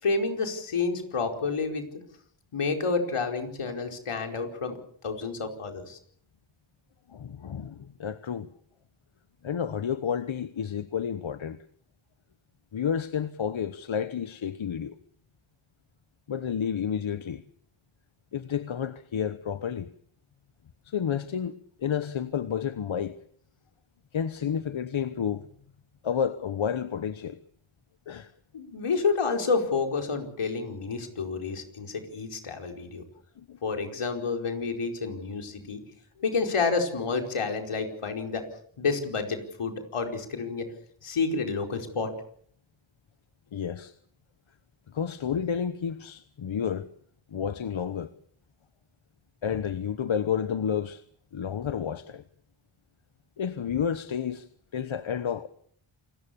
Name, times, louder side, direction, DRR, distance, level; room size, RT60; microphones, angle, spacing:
voice 1, 0.0-1.8 2.5-4.8 5.0-6.0 28.5-33.0 33.6-35.8 36.2-38.4 38.8-40.7 41.0-42.1, left 4 dB, 90° left, 4.9 m, -29 dB
voice 2, 7.1-8.5 9.4-11.6 12.7-14.9 16.3-17.4 18.3-19.9 20.9-21.5 21.8-23.1 24.1-25.5 26.0-27.4 28.1-28.3 33.5-33.6 43.5-43.9 44.9-46.9 47.3-48.1 49.4-51.0 51.3-52.2 53.4-54.4 54.7-55.5, left 8 dB, 70° left, 1.2 m, -30 dB
28.0 x 20.0 x 7.0 m
wide cardioid pair, 70°, 50 cm